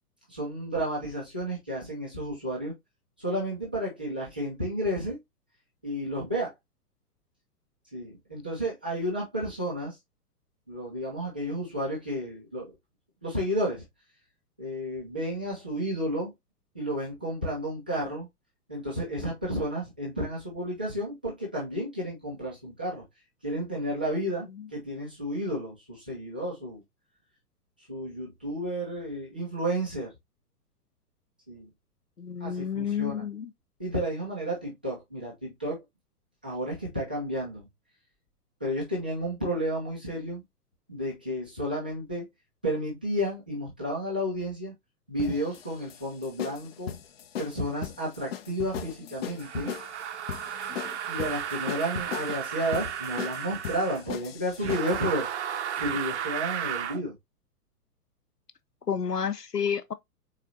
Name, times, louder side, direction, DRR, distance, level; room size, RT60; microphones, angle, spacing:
voice 1, 0.3-2.7 3.2-5.2 5.8-6.5 7.9-9.9 10.7-12.6 13.2-13.8 14.6-16.3 16.7-18.3 18.7-23.0 23.4-26.8 27.9-30.1 31.5-31.7 32.4-33.2 33.8-35.8 36.4-37.7 38.6-40.4 40.9-42.3 42.6-44.7 45.1-47.0 47.4-49.8 51.1-55.3 55.7-57.2, equal, 5° right, 0.3 m, -32 dB
voice 2, 32.2-33.5 50.5-51.0 58.9-59.9, left 7 dB, 90° left, 0.8 m, -31 dB
sound 1, 45.2-55.1, left 10 dB, 40° left, 0.6 m, -39 dB
sound 2, 49.4-54.0 54.6-57.0, right 9 dB, 50° right, 0.6 m, -34 dB
4.1 x 3.9 x 2.8 m
figure-of-eight pair, 115°, 46 cm